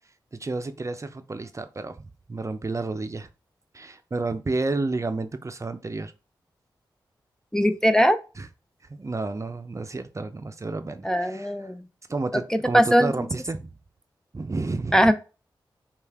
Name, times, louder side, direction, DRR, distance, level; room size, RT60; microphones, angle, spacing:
voice 1, 0.3-3.3 3.7-6.1 8.4-8.5 8.9-11.5 12.1-13.7 14.3-15.0, right 3 dB, 35° right, 9 dB, 0.6 m, -31 dB
voice 2, 7.5-8.2 11.0-11.9 12.3-13.3 14.9-15.1, equal, 5° left, 9 dB, 0.5 m, -20 dB
5.5 x 2.4 x 3.5 m, 0.31 s
cardioid pair, 45°, 9 cm